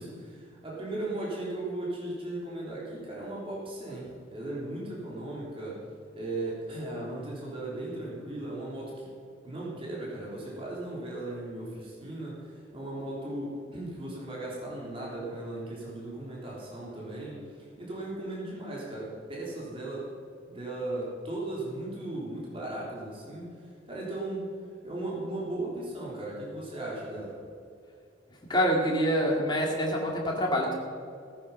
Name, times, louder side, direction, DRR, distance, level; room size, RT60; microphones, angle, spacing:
voice 1, 0.0-5.8 6.1-9.1 9.4-17.4 17.8-20.1 20.5-23.4 23.9-24.5 24.8-27.4, right 2 dB, 25° right, -5 dB, 3.5 m, -37 dB
voice 2, 28.5-30.7, equal, 20° left, -1 dB, 2.3 m, -26 dB
16.5 x 9.4 x 5.7 m, 2.3 s
head